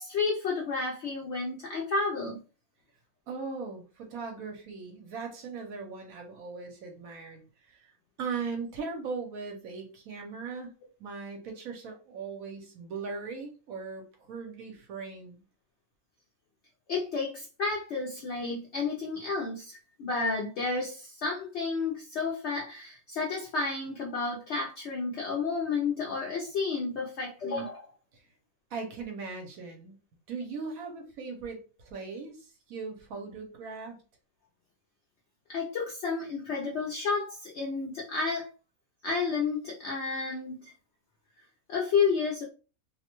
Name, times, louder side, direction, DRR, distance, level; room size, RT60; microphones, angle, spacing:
voice 1, 0.0-2.4 16.9-27.9 35.5-38.5 39.0-40.7 41.7-42.4, left 4 dB, 65° left, -2 dB, 0.7 m, -31 dB
voice 2, 3.3-7.9 8.2-10.7 11.0-15.4 28.1-28.3 28.7-30.0 30.3-34.0, right 4 dB, 75° right, 2 dB, 1.1 m, -39 dB
2.7 x 2.1 x 2.9 m, 0.34 s
omnidirectional pair, 1.5 m